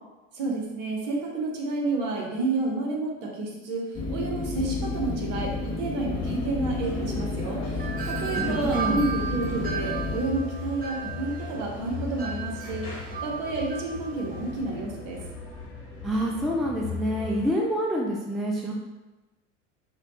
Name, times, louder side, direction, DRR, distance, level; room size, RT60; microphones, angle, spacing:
voice 1, 0.3-7.6 8.1-12.8 13.2-15.2, right 3 dB, 55° right, 0 dB, 1.1 m, -30 dB
sound 1, 3.9-10.2, left 3 dB, 40° left, 0.8 m, -31 dB
sound 2, 6.1-17.5, left 4 dB, 85° left, 1.3 m, -38 dB
Wind chime, 7.8-14.5, right 5 dB, 25° right, 0.7 m, -36 dB
voice 2, 8.3-9.1 16.0-18.7, equal, ahead, -2 dB, 0.3 m, -27 dB
4.8 x 2.3 x 2.9 m, 1.1 s
hypercardioid pair, 80°, 38 cm